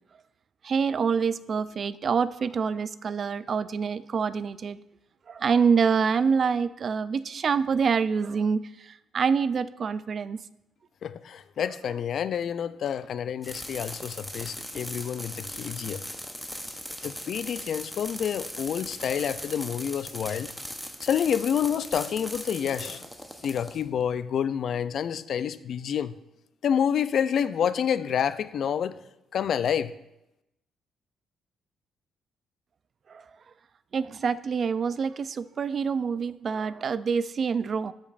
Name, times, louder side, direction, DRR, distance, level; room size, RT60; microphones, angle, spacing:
voice 1, 0.6-4.8 5.3-10.4 33.1-33.2 33.9-37.9, right 6 dB, 50° right, 0.3 m, -26 dB
voice 2, 11.0-16.1 17.0-20.5 21.0-23.1 23.4-26.1 26.6-29.0 29.3-29.9, left 8 dB, 65° left, 0.3 m, -28 dB
sound 1, 13.4-24.2, equal, 5° left, 0.7 m, -39 dB
13.5 x 5.2 x 2.5 m
cardioid pair, 90°, 0 cm